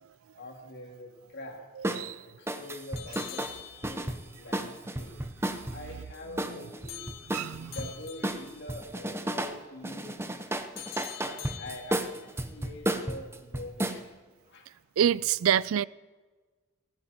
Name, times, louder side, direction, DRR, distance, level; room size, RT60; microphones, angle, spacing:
voice 1, 0.4-1.9 2.3-5.2 5.7-7.1 7.5-10.5 11.2-14.1 14.4-14.7, left 1 dB, 55° left, 3.2 m, -45 dB
sound 1, 1.8-2.0 2.5-5.8 6.4-7.9 8.2-9.6 9.8-14.0, right 1 dB, 10° right, 0.7 m, -33 dB
sound 2, 3.0-4.3 6.9-8.6 10.8-12.3, left 13 dB, 75° left, 0.9 m, -45 dB
voice 2, 7.3-7.7 15.0-15.8, right 9 dB, 85° right, 0.4 m, -26 dB
18.5 x 15.5 x 4.5 m
head